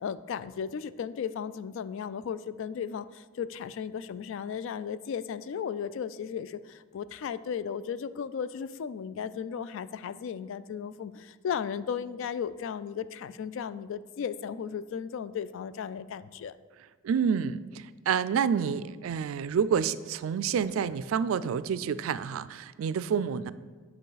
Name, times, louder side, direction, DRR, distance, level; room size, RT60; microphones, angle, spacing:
voice 1, 0.0-16.6, left 7 dB, 70° left, 15 dB, 0.3 m, -35 dB
voice 2, 17.0-23.5, right 7 dB, 85° right, 15 dB, 0.3 m, -28 dB
9.0 x 5.5 x 4.0 m, 1.4 s
head